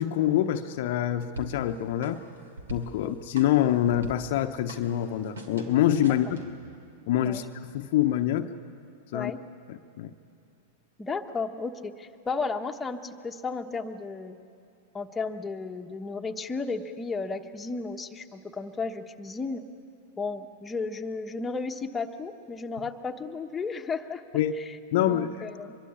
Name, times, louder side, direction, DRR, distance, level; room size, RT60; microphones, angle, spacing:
voice 1, 0.0-2.2 2.7-6.4 7.1-7.5 7.7-8.5 9.1-9.3 9.7-10.1 24.3-24.5 24.9-25.4, left 12 dB, 55° left, 7 dB, 0.9 m, -25 dB
sound 1, 1.4-6.7, right 2 dB, 75° right, 2.7 m, -44 dB
voice 2, 11.0-14.4 14.9-19.6 20.2-24.2 24.6-24.8 25.0-25.8, left 4 dB, 15° left, 3 dB, 1.3 m, -34 dB
24.0 x 22.5 x 8.5 m, 2.5 s
figure-of-eight pair, 95°, 0 cm